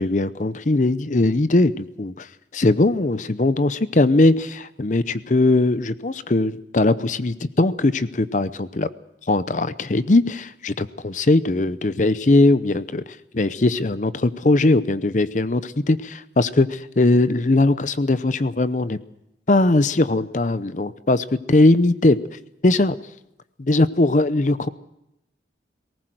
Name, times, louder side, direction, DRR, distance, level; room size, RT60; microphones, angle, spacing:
voice 1, 0.0-2.3 2.5-8.9 9.3-19.0 19.5-22.2 22.6-22.9 23.6-24.7, left 2 dB, 45° left, 14 dB, 0.7 m, -20 dB
19.5 x 18.5 x 7.8 m, 0.85 s
head